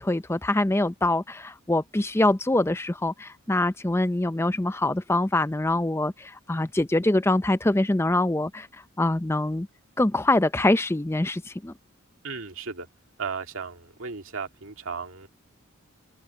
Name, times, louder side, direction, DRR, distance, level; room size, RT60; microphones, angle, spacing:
voice 1, 0.0-8.7 9.0-9.7 10.0-11.7, left 2 dB, 10° left, 0.5 m, -24 dB
voice 2, 12.2-12.9 13.2-15.3, right 5 dB, 75° right, 2.1 m, -35 dB
open air
head